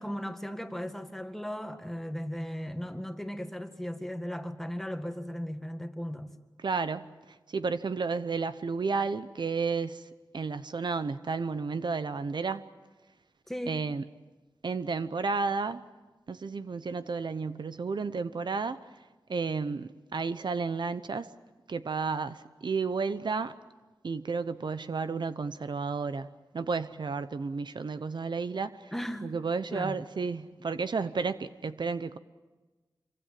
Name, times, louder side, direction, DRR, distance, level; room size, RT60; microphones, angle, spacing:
voice 1, 0.0-6.3 13.5-13.8 28.9-29.3 29.7-30.0, equal, 5° left, 1.8 m, -36 dB
voice 2, 6.6-7.1 7.5-10.1 10.3-12.7 13.7-14.0 14.6-15.8 16.3-18.8 19.3-21.3 21.7-23.6 24.0-26.3 26.5-28.9 29.2-32.2, right 4 dB, 70° right, 0.8 m, -32 dB
27.0 x 24.5 x 7.6 m
wide cardioid pair, 105°, 8 cm